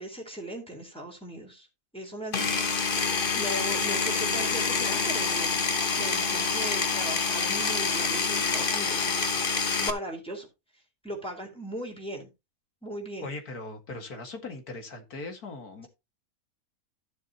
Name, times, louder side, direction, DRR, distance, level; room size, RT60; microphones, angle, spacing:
voice 1, 0.0-1.7 1.9-2.6 3.3-5.5 6.0-9.2 9.8-10.5 11.0-12.3 12.8-13.3, right 1 dB, 5° left, 3.8 m, -38 dB
Power tool, 2.3-9.9, left 5 dB, 40° left, 1.3 m, -27 dB
voice 2, 13.2-15.9, left 3 dB, 85° left, 2.7 m, -39 dB
14.0 x 7.4 x 3.0 m
omnidirectional pair, 1.6 m